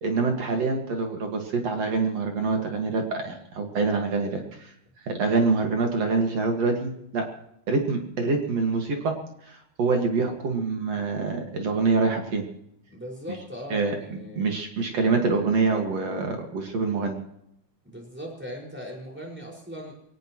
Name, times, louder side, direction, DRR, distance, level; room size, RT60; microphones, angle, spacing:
voice 1, 0.0-4.7 5.1-7.3 7.7-9.1 9.5-12.4 13.7-13.9 14.4-17.2, right 4 dB, 45° right, 3 dB, 2.6 m, -25 dB
voice 2, 12.9-14.5 17.8-19.9, equal, 5° right, -1 dB, 5.1 m, -39 dB
22.0 x 18.5 x 3.1 m, 0.74 s
omnidirectional pair, 4.8 m